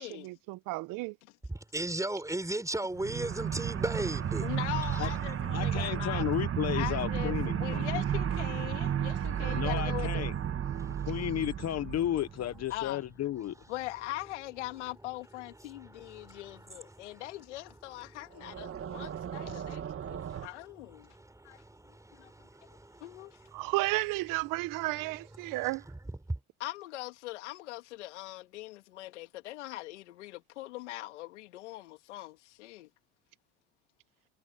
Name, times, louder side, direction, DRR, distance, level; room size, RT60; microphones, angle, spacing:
voice 1, 0.0-1.1 9.4-9.5 23.5-25.8, right 22 dB, 70° right, 1.2 m, -33 dB
voice 2, 1.7-4.6 4.8-5.1 8.9-9.7 10.6-11.3 13.4-13.5 15.6-17.3 17.7-17.8 18.1-23.7 25.4-26.0 26.3-26.4, right 2 dB, 10° right, 5.3 m, -39 dB
sound 1, 2.9-12.9 18.4-20.5, right 9 dB, 40° right, 1.9 m, -33 dB
voice 3, 4.4-6.2 6.7-10.3 12.7-13.0 13.7-21.1 21.4-21.6 22.1-22.3 23.0-23.4 26.6-32.9, left 18 dB, 85° left, 3.2 m, -41 dB
voice 4, 5.5-8.0 9.5-10.3 11.0-13.5 19.5-19.6, left 12 dB, 50° left, 1.2 m, -33 dB
hypercardioid pair, 75°, 34 cm